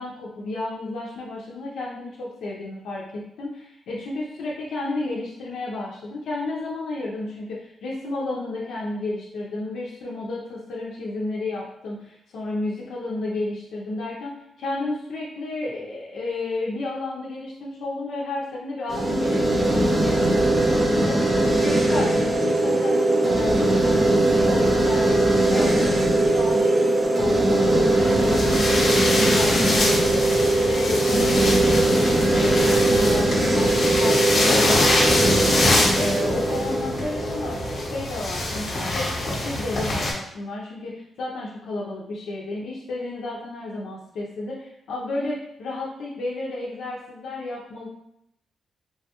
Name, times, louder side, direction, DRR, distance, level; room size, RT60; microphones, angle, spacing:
voice 1, 0.0-25.1 25.5-35.6 35.9-39.1 39.4-47.9, left 2 dB, 85° left, -5 dB, 0.4 m, -32 dB
sound 1, 18.9-38.0, right 1 dB, 25° right, 0.4 m, -20 dB
sound 2, 28.0-40.1, left 1 dB, 50° left, 0.8 m, -24 dB
3.3 x 2.2 x 2.8 m, 0.79 s
cardioid pair, 115°, 0 cm